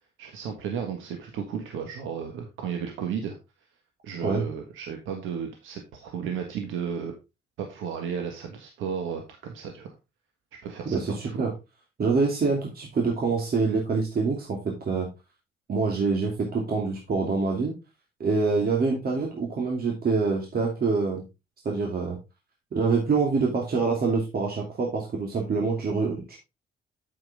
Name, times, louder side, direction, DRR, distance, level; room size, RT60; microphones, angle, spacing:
voice 1, 0.2-3.4 4.0-7.1 7.6-9.9 10.6-11.5, right 7 dB, 90° right, 4 dB, 1.6 m, -34 dB
voice 2, 10.8-11.5 12.0-15.1 15.7-17.8 18.2-21.2 21.6-22.2 22.7-26.4, right 4 dB, 50° right, 0 dB, 2.7 m, -25 dB
8.9 x 7.4 x 3.5 m, 0.25 s
cardioid pair, 90°, 20 cm